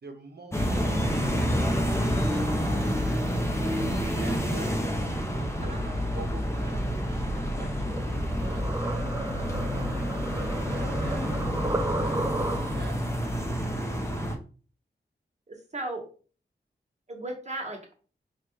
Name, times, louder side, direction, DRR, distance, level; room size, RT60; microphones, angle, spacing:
voice 1, 0.0-3.3 3.7-9.1 9.6-12.2 12.5-14.2, right 3 dB, 60° right, 4 dB, 1.0 m, -46 dB
sound 1, 0.5-14.4, equal, 15° left, 0.7 m, -28 dB
sound 2, 7.9-13.0, right 2 dB, 15° right, 0.5 m, -34 dB
voice 2, 15.5-16.1 17.1-17.9, right 2 dB, 40° right, 1 dB, 1.4 m, -37 dB
4.4 x 2.4 x 3.1 m, 0.39 s
cardioid pair, 55°, 19 cm